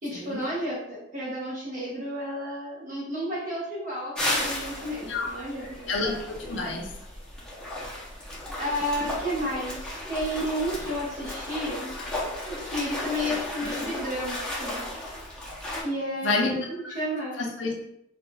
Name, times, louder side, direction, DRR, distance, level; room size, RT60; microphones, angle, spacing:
voice 1, 0.0-5.9 8.6-11.9 12.4-14.8 15.8-16.6 16.9-17.4, equal, 45° right, -7 dB, 1.4 m, -32 dB
sound 1, 4.1-15.8, left 1 dB, 5° left, 0.7 m, -34 dB
voice 2, 5.9-6.9 16.2-16.5 16.8-16.9 17.4-17.7, left 3 dB, 70° left, -1 dB, 0.6 m, -28 dB
4.1 x 2.4 x 2.3 m, 0.77 s
head